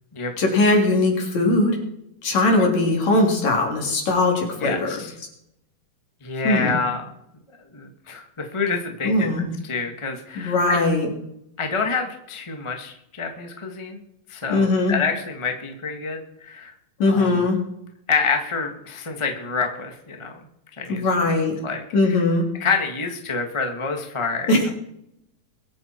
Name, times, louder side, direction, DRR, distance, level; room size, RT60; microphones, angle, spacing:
voice 1, 0.4-1.8 2.2-5.0 6.4-6.8 9.0-9.5 10.4-11.1 14.5-14.9 17.0-17.6 20.9-21.6 21.9-22.5 24.5-24.7, left 2 dB, 55° left, 1 dB, 4.5 m, -20 dB
voice 2, 4.6-5.1 6.2-7.0 7.7-10.8 11.6-14.0 14.3-16.7 17.0-17.3 18.1-20.4 20.8-21.1 21.6-22.2 22.6-24.7, left 4 dB, 25° left, 3 dB, 0.6 m, -27 dB
23.0 x 9.0 x 4.5 m, 0.78 s
omnidirectional pair, 4.0 m